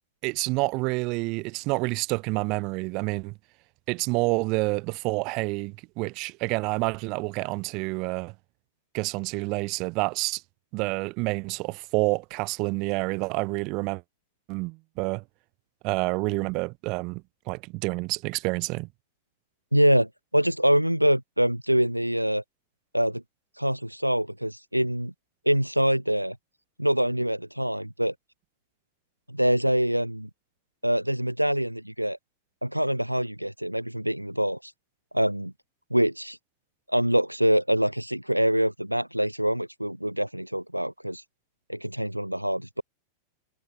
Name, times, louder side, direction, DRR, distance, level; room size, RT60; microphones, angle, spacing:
voice 1, 0.2-3.3 3.9-8.3 8.9-10.4 10.7-14.0 14.5-15.2 15.8-18.9, right 26 dB, 40° right, 2.1 m, -28 dB
voice 2, 19.7-22.4 22.9-23.2 23.6-25.1 25.5-26.4 26.8-28.1 29.3-30.3 30.8-32.2 32.6-34.7 35.1-35.5 35.9-36.4 36.9-41.2 41.7-42.8, equal, 90° right, 1.8 m, -25 dB
figure-of-eight pair, 90°, 0 cm